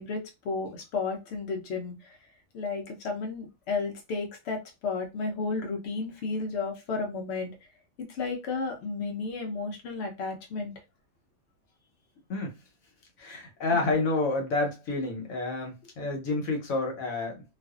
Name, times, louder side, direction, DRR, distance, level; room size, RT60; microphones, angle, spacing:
voice 1, 0.0-2.2 2.5-7.6 8.0-10.7 13.7-13.9, left 4 dB, 60° left, 0.8 m, -33 dB
voice 2, 13.2-17.4, left 3 dB, 75° left, 1.2 m, -29 dB
2.5 x 2.3 x 2.3 m
omnidirectional pair, 1.5 m